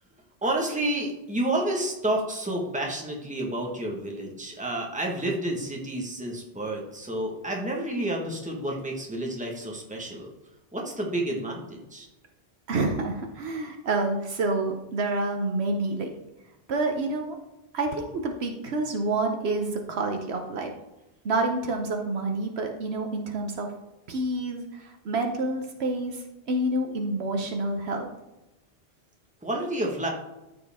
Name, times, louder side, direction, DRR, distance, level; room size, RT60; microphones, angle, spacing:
voice 1, 0.4-10.3 10.7-12.1 29.4-30.1, right 1 dB, 5° right, -1 dB, 1.3 m, -30 dB
voice 2, 12.7-16.1 16.7-17.4 17.7-20.7 21.2-23.7 24.1-28.1, right 2 dB, 75° right, 3 dB, 1.1 m, -28 dB
13.5 x 5.0 x 3.5 m, 0.96 s
omnidirectional pair, 1.1 m